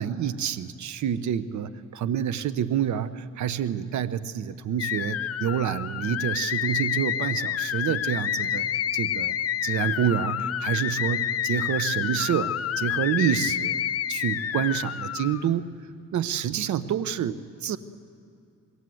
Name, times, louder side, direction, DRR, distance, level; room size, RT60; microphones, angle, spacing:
voice 1, 0.0-8.7 8.9-9.4 9.6-13.8 14.1-15.7 16.1-17.8, right 9 dB, 70° right, 13 dB, 1.1 m, -28 dB
sound 1, 4.8-15.5, left 10 dB, 50° left, 0.8 m, -28 dB
26.0 x 22.0 x 7.9 m, 2.5 s
cardioid pair, 90°, 30 cm